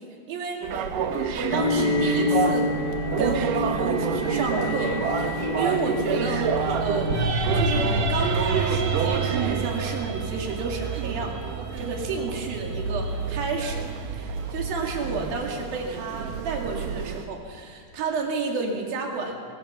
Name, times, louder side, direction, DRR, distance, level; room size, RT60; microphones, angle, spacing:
voice 1, 0.3-0.6 1.4-2.7 3.2-6.5 6.8-7.1 7.5-11.4 11.8-13.9 14.2-19.3, right 4 dB, 90° right, 0 dB, 4.2 m, -31 dB
sound 1, 0.6-17.2, right 6 dB, 70° right, 2.9 m, -29 dB
sound 2, 1.5-7.2, left 2 dB, 25° left, 5.8 m, -27 dB
sound 3, 6.4-14.5, right 3 dB, 50° right, 1.9 m, -29 dB
22.0 x 22.0 x 5.9 m, 2.3 s
omnidirectional pair, 4.0 m